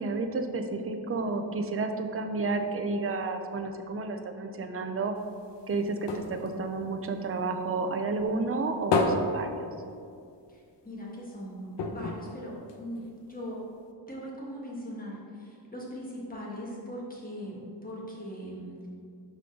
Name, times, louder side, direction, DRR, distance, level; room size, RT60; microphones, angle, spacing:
voice 1, 0.0-5.2 5.7-9.7, right 3 dB, 30° right, 6 dB, 0.5 m, -31 dB
sound 1, 5.2-7.8 8.2-10.4 10.8-10.9 11.2-11.3 11.7-13.3 13.9-14.0, left 3 dB, 70° left, 0.8 m, -32 dB
voice 2, 10.5-13.6 14.1-18.9, equal, 20° left, -4 dB, 1.4 m, -40 dB
11.5 x 3.9 x 3.7 m, 2.4 s
wide cardioid pair, 165°, 44 cm